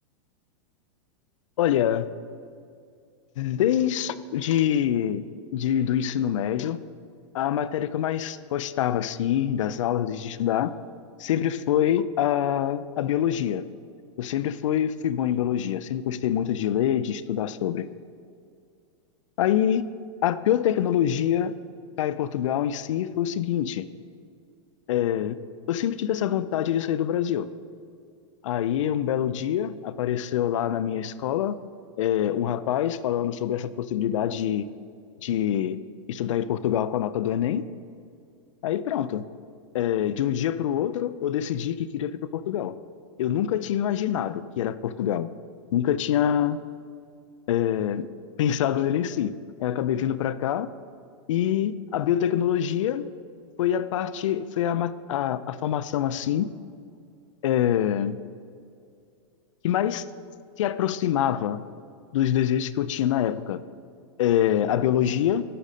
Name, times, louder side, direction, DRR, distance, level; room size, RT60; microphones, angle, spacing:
voice 1, 1.6-2.1 3.4-5.3 5.5-6.8 7.3-10.7 11.2-13.7 14.2-17.9 19.4-19.8 20.2-21.5 22.0-23.9 24.9-25.4 25.7-27.5 28.4-31.6 32.0-34.7 35.2-35.8 36.1-37.6 38.6-39.2 39.7-42.7 43.2-45.3 45.7-46.6 47.5-48.1 48.4-50.7 51.3-53.1 53.6-56.5 57.4-58.2 59.6-60.0 60.6-61.6 62.1-63.6 64.2-65.4, left 10 dB, 75° left, 15 dB, 0.4 m, -25 dB
11.0 x 5.0 x 4.2 m, 2.4 s
hypercardioid pair, 130°, 16 cm